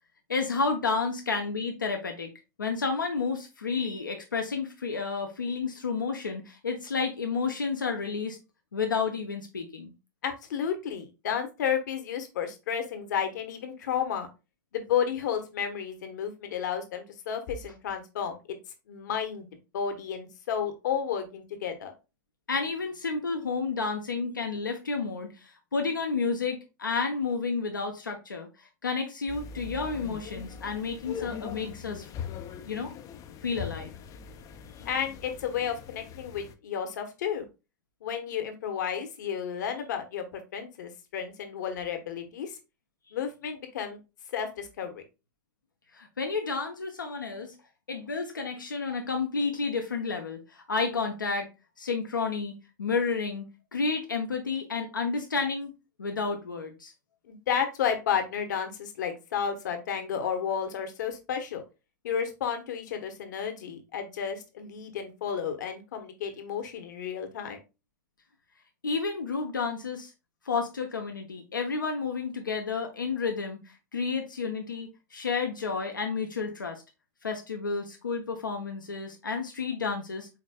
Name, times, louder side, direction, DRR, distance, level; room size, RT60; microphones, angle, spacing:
voice 1, 0.3-2.3 2.6-8.4 8.7-9.9 22.5-32.1 32.7-32.9 33.4-33.9 45.9-47.5 47.9-51.5 51.8-53.5 53.7-55.7 56.0-56.9 68.8-70.1 70.4-76.8 77.2-80.3, left 4 dB, 85° left, 3 dB, 0.8 m, -31 dB
voice 2, 10.2-14.3 14.7-18.6 18.9-19.5 19.7-21.9 34.9-37.4 38.0-42.6 43.1-44.0 44.3-45.0 57.3-61.6 62.0-67.6, left 8 dB, 65° left, 6 dB, 1.1 m, -32 dB
sound 1, 29.3-36.5, left 7 dB, 35° left, 0.5 m, -41 dB
5.1 x 4.0 x 2.2 m, 0.27 s
figure-of-eight pair, 95°, 10 cm